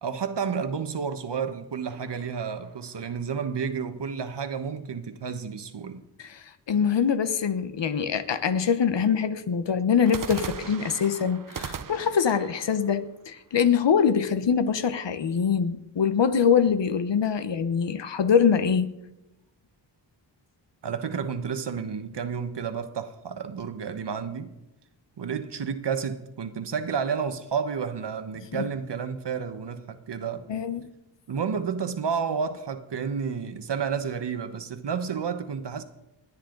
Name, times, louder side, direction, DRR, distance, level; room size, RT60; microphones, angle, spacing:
voice 1, 0.0-6.0 20.8-24.5 25.2-30.5 31.3-35.8, right 6 dB, 60° right, 1.3 m, -31 dB
sound 1, 1.8-3.3 10.0-14.0, right 7 dB, 45° right, 0.8 m, -40 dB
voice 2, 6.2-18.9 28.5-28.6 30.5-30.9, left 7 dB, 65° left, 1.1 m, -24 dB
29.0 x 9.7 x 4.0 m
wide cardioid pair, 95°, 46 cm